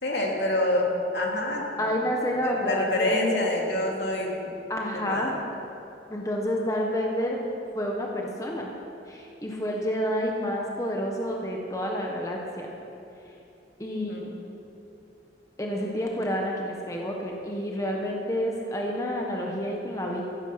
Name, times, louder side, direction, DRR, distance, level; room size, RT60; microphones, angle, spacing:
voice 1, 0.0-0.8 1.1-1.9 2.4-4.5 5.1-5.3 13.9-14.3, left 1 dB, 70° left, -1 dB, 2.6 m, -27 dB
voice 2, 1.8-3.5 4.7-5.3 6.1-7.4 7.7-8.7 9.1-12.7 13.8-14.3 15.6-20.2, equal, 20° left, -1 dB, 1.3 m, -29 dB
15.0 x 13.5 x 5.8 m, 2.8 s
head